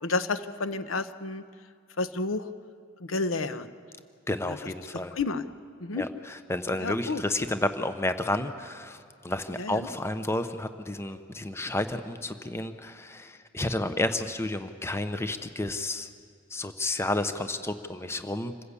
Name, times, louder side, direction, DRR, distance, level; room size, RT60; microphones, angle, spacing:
voice 1, 0.0-1.4 2.0-2.5 3.0-3.7 4.5-4.6 5.2-5.4 5.8-6.0 6.8-7.2 9.6-9.9, left 3 dB, 85° left, 11 dB, 0.9 m, -30 dB
voice 2, 4.3-5.1 5.9-16.1 16.5-18.5, left 1 dB, 15° left, 9 dB, 0.8 m, -31 dB
26.5 x 15.0 x 8.3 m, 2.2 s
head